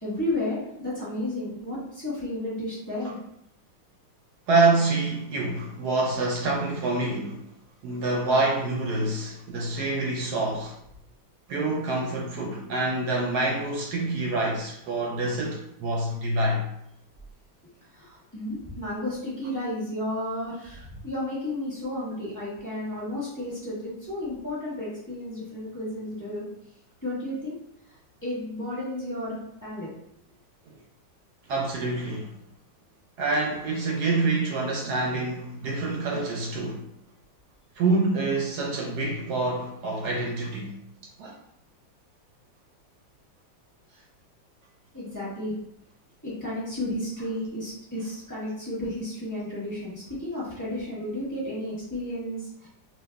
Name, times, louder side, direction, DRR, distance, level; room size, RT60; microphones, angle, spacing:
voice 1, 0.0-3.2 17.9-26.5 27.0-27.6 28.2-29.9 44.9-45.5 46.2-52.7, left 1 dB, 10° left, -9 dB, 1.1 m, -32 dB
voice 2, 4.5-7.4 7.8-10.7 11.5-16.7 31.5-32.3 33.2-36.8 37.8-40.8 41.2-41.3, right 2 dB, 70° right, -1 dB, 1.0 m, -26 dB
3.1 x 2.7 x 3.4 m, 0.76 s
omnidirectional pair, 2.1 m